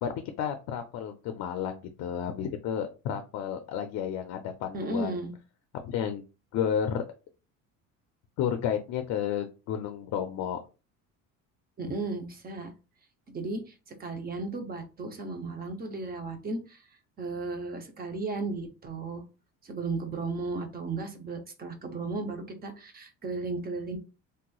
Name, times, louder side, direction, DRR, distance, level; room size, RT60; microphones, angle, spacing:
voice 1, 0.0-5.2 5.8-6.2 6.5-7.0 8.4-10.6, left 8 dB, 55° left, 7 dB, 0.5 m, -31 dB
voice 2, 4.7-5.3 11.8-12.7 13.3-16.9 17.2-19.2 19.6-24.0, right 3 dB, 30° right, 6 dB, 0.6 m, -35 dB
3.3 x 2.9 x 2.2 m, 0.31 s
cardioid pair, 140°, 33 cm